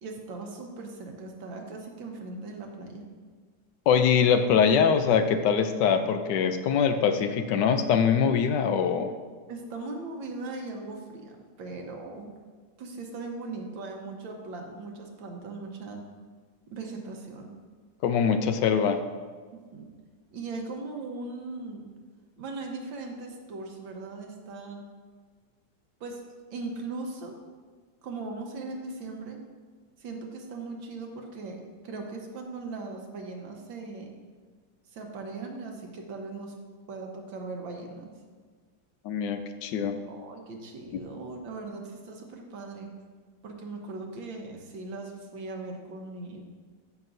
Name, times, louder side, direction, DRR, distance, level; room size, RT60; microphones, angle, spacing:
voice 1, 0.0-3.1 9.5-12.3 12.8-16.0 16.7-17.5 19.5-19.9 20.3-21.9 22.4-24.9 26.0-27.4 28.0-29.4 30.0-34.1 34.9-36.5 36.9-38.1 40.0-42.9 43.4-46.4, right 3 dB, 90° right, 1 dB, 1.8 m, -39 dB
voice 2, 3.9-9.1 18.0-19.0 39.0-40.0 40.9-41.0, left 7 dB, 75° left, 8 dB, 1.2 m, -23 dB
14.0 x 6.0 x 2.6 m, 1.5 s
omnidirectional pair, 2.0 m